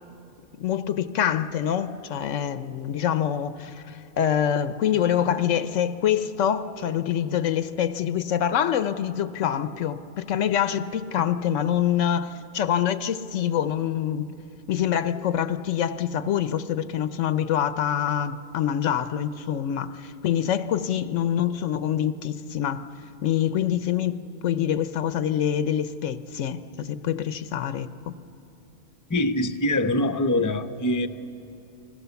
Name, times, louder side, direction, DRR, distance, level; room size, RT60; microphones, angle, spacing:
voice 1, 0.6-14.2 14.7-22.9 23.2-28.1, left 9 dB, 85° left, 12 dB, 1.1 m, -25 dB
voice 2, 29.1-31.1, left 1 dB, 20° left, 7 dB, 0.6 m, -24 dB
29.5 x 21.5 x 7.0 m, 2.8 s
omnidirectional pair, 1.2 m